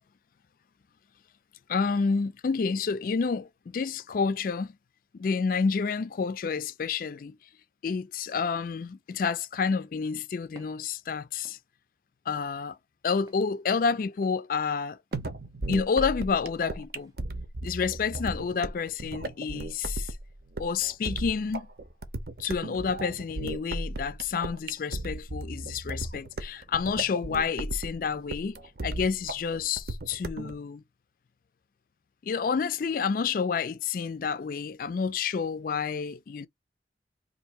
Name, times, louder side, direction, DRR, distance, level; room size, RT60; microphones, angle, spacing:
voice 1, 1.7-4.7 5.1-7.4 7.8-11.6 12.3-12.8 13.0-15.0 15.7-17.1 17.6-20.1 20.6-21.7 22.4-30.8 32.2-36.5, left 5 dB, 50° left, 0.3 m, -29 dB
Walk footsteps, 10.6-10.8 11.4-11.6 12.3-12.5 13.3-13.4 14.2-14.4 15.1-15.3 16.0-16.2 17.0-17.2 17.8-18.0, right 1 dB, 20° right, 0.7 m, -53 dB
sound 1, 15.1-30.5, right 2 dB, 60° right, 0.7 m, -36 dB
2.7 x 2.6 x 4.2 m
head